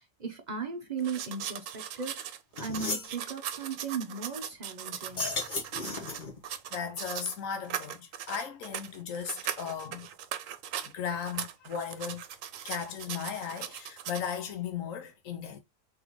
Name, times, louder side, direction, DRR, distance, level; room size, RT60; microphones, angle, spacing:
voice 1, 0.0-2.3 2.6-5.3, right 5 dB, 40° right, 0.7 m, -37 dB
sound 1, 1.0-7.4 7.6-10.9 11.2-14.3, right 9 dB, 85° right, 1.0 m, -39 dB
sound 2, 2.2-2.3 2.6-3.1 5.0-6.4, left 3 dB, 40° left, 1.1 m, -34 dB
voice 2, 6.7-10.1 10.9-12.3 12.6-15.6, left 7 dB, 80° left, 1.1 m, -36 dB
3.9 x 3.4 x 3.0 m
omnidirectional pair, 1.3 m